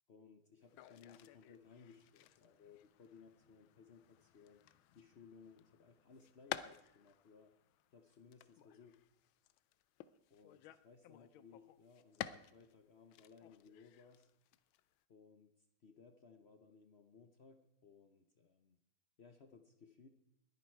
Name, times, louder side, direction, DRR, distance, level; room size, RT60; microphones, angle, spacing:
voice 1, 0.1-4.6 4.9-7.5 7.9-9.0 10.3-14.3 15.1-18.8 19.2-20.1, left 5 dB, 55° left, 7 dB, 0.7 m, -62 dB
sound 1, 0.6-12.7 13.1-15.0, left 12 dB, 90° left, 1.4 m, -53 dB
20.5 x 9.5 x 4.5 m, 0.84 s
omnidirectional pair, 2.1 m